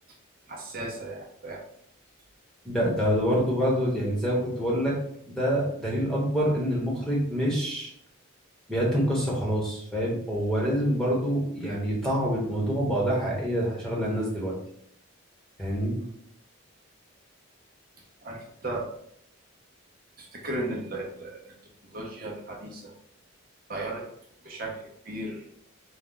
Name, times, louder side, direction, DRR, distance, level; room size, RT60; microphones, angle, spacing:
voice 1, 0.5-1.6 18.2-18.8 20.2-21.4 21.9-22.9 23.7-24.0 24.4-25.5, right 1 dB, 45° right, -2 dB, 0.7 m, -35 dB
voice 2, 2.6-4.9 5.3-7.9 8.7-14.5 15.6-16.0, equal, 5° left, -4 dB, 1.1 m, -26 dB
4.3 x 2.3 x 3.8 m, 0.69 s
head